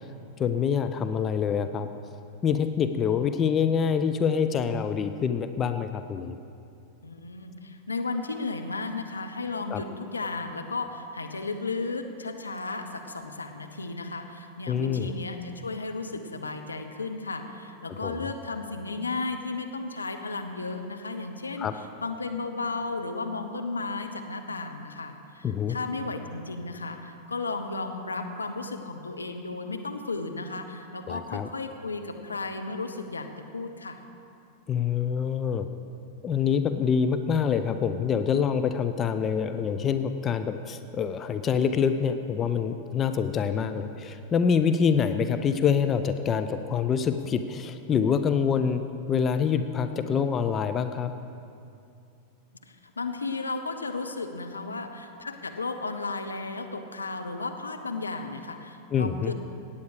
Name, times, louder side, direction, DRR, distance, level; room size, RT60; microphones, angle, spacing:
voice 1, 0.4-1.9 2.4-6.4 9.7-9.8 14.7-15.1 18.0-18.3 21.6-21.7 25.4-25.8 31.1-31.5 34.7-35.7 36.2-48.8 49.1-51.1 58.9-59.3, left 7 dB, 25° left, 9 dB, 0.5 m, -26 dB
voice 2, 7.0-21.7 22.0-33.3 33.5-34.0 53.0-59.3, left 3 dB, 75° left, 5 dB, 0.8 m, -34 dB
17.5 x 8.5 x 4.9 m, 2.5 s
figure-of-eight pair, 90°, 0 cm